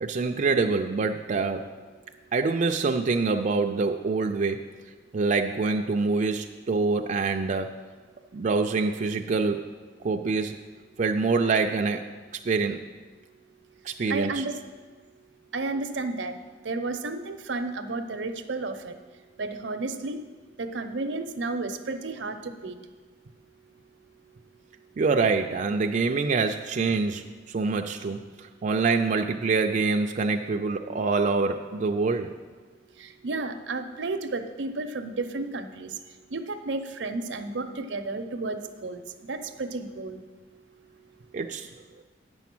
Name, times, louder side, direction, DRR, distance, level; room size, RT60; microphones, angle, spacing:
voice 1, 0.0-1.7 2.3-4.7 5.1-7.7 8.3-9.7 10.0-10.6 11.0-12.0 12.4-12.8 13.8-14.4 25.0-32.3 41.3-41.7, right 4 dB, 45° right, 4 dB, 0.4 m, -25 dB
voice 2, 14.1-14.6 15.5-16.4 16.6-18.9 19.4-20.2 20.6-22.8 33.0-35.9 36.3-39.0 39.3-40.2, right 3 dB, 80° right, 8 dB, 0.7 m, -32 dB
9.1 x 7.0 x 6.0 m, 1.4 s
head